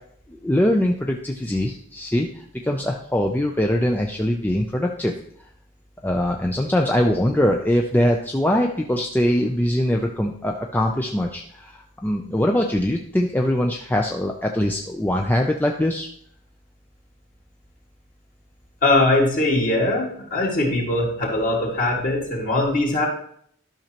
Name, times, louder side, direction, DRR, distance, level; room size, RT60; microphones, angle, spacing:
voice 1, 0.3-5.1 6.0-16.1, left 1 dB, 10° left, 1 dB, 0.4 m, -22 dB
voice 2, 18.8-23.1, left 2 dB, 40° left, -2 dB, 2.1 m, -21 dB
12.0 x 6.2 x 2.9 m, 0.64 s
head